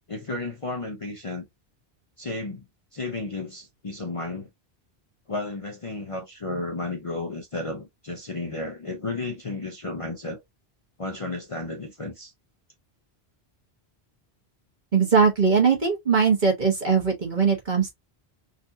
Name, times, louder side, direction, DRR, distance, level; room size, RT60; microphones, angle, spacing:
voice 1, 0.1-1.5 2.2-2.6 2.9-4.5 5.3-10.4 11.0-12.3, left 2 dB, 40° left, 0.6 m, -33 dB
voice 2, 14.9-17.9, right 5 dB, 45° right, 1.4 m, -20 dB
4.1 x 2.6 x 2.7 m
omnidirectional pair, 1.1 m